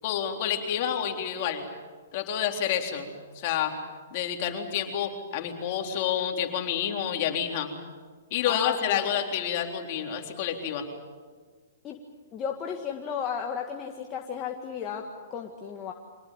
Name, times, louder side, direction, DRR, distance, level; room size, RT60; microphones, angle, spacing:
voice 1, 0.0-1.6 2.1-3.7 4.1-7.7 8.3-10.8, left 9 dB, 45° left, 3 dB, 3.7 m, -29 dB
voice 2, 8.5-9.1 11.8-12.0 12.3-15.9, left 7 dB, 25° left, 1 dB, 1.9 m, -34 dB
25.5 x 19.0 x 9.2 m, 1.5 s
hypercardioid pair, 130°, 0 cm